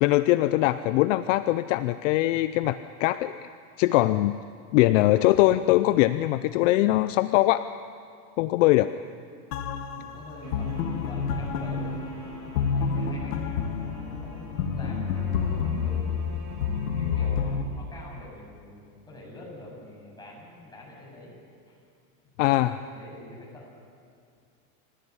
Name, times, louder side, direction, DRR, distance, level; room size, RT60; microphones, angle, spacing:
voice 1, 0.0-3.5 3.8-4.4 4.7-7.6 8.4-8.9 22.4-22.7, left 16 dB, 55° left, 13 dB, 0.7 m, -22 dB
sound 1, 9.5-17.6, left 6 dB, 75° left, 2.1 m, -29 dB
voice 2, 9.8-13.4 14.0-16.1 16.9-21.3 21.7-21.8 22.6-23.7, left 1 dB, 10° left, -3 dB, 7.9 m, -45 dB
sound 2, 10.4-18.2, right 3 dB, 35° right, 4.6 m, -45 dB
27.5 x 15.0 x 9.8 m, 2.3 s
supercardioid pair, 140°, 44 cm